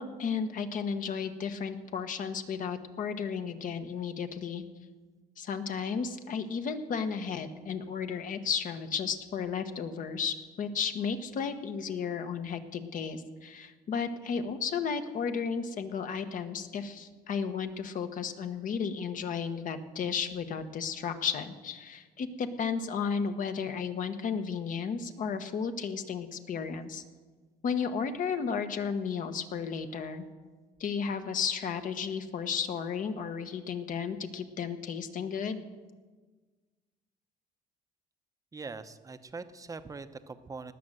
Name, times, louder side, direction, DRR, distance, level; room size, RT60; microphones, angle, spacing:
voice 1, 0.0-4.6 5.4-27.0 27.6-30.2 30.8-35.6, left 6 dB, 50° left, 8 dB, 1.2 m, -33 dB
voice 2, 38.5-40.7, right 4 dB, 20° right, 10 dB, 0.8 m, -42 dB
19.0 x 6.5 x 7.8 m, 1.4 s
cardioid pair, 110°, 17 cm